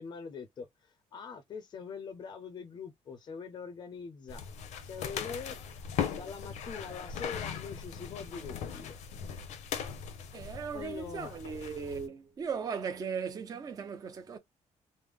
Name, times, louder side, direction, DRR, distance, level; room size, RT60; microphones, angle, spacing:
voice 1, 0.0-4.5 4.8-5.6 6.1-9.0 10.7-11.4, left 5 dB, 35° left, 0.6 m, -43 dB
sound 1, 4.3-12.1, left 7 dB, 75° left, 0.7 m, -39 dB
voice 2, 10.3-14.4, right 6 dB, 30° right, 0.6 m, -37 dB
3.4 x 2.0 x 3.5 m
cardioid pair, 180°, 12 cm